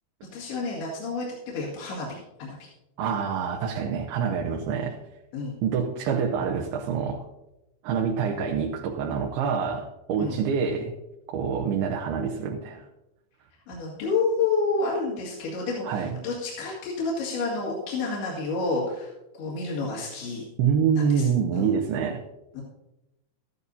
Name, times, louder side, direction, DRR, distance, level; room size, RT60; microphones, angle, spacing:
voice 1, 0.3-2.7 5.3-5.6 10.2-10.4 13.7-19.1 19.4-20.4 21.0-21.7 22.5-22.6, left 3 dB, 80° left, -5 dB, 4.3 m, -29 dB
voice 2, 3.0-5.0 5.6-7.3 7.8-11.0 11.3-12.9 15.9-16.2 20.6-22.2, right 6 dB, 80° right, 1 dB, 2.8 m, -26 dB
14.0 x 13.0 x 2.7 m, 0.93 s
omnidirectional pair, 4.5 m